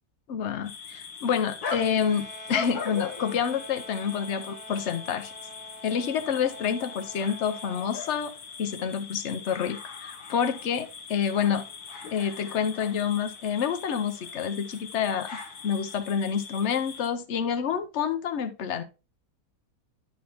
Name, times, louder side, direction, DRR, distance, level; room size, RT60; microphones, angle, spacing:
voice 1, 0.3-5.3 5.8-8.3 8.6-11.6 12.1-15.3 15.6-18.8, left 7 dB, 55° left, 1.0 m, -28 dB
sound 1, 0.6-17.1, left 5 dB, 85° left, 1.7 m, -40 dB
sound 2, 1.7-8.0, equal, 40° right, 1.7 m, -46 dB
11.0 x 4.3 x 3.5 m
omnidirectional pair, 1.6 m